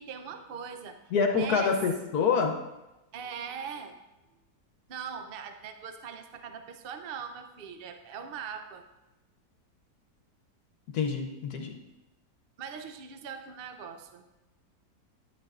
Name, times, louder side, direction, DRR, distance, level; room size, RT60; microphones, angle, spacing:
voice 1, 0.0-1.0 1.3-1.8 3.1-3.9 4.9-8.8 12.6-14.2, right 7 dB, 65° right, 7 dB, 0.5 m, -41 dB
voice 2, 1.1-2.6 10.9-11.8, left 5 dB, 70° left, 3 dB, 1.3 m, -26 dB
11.5 x 9.0 x 2.4 m, 0.99 s
omnidirectional pair, 1.8 m